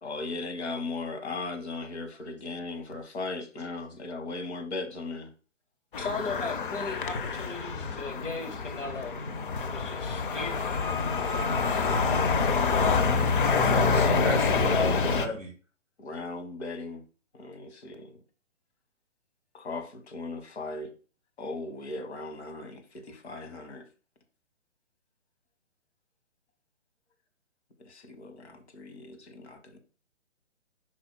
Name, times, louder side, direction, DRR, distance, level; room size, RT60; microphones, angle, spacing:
voice 1, 0.0-5.3 12.5-15.4 16.0-17.0 17.3-18.2 19.5-20.9 21.4-23.8 27.8-29.8, left 3 dB, 60° left, 1.5 m, -38 dB
sound 1, 5.9-15.3, left 4 dB, 45° left, 0.7 m, -27 dB
voice 2, 6.0-9.1 9.6-11.0, left 3 dB, 75° left, 2.4 m, -37 dB
voice 3, 13.6-15.5, equal, ahead, 0.4 m, -33 dB
4.9 x 4.1 x 5.8 m
figure-of-eight pair, 130°, 37 cm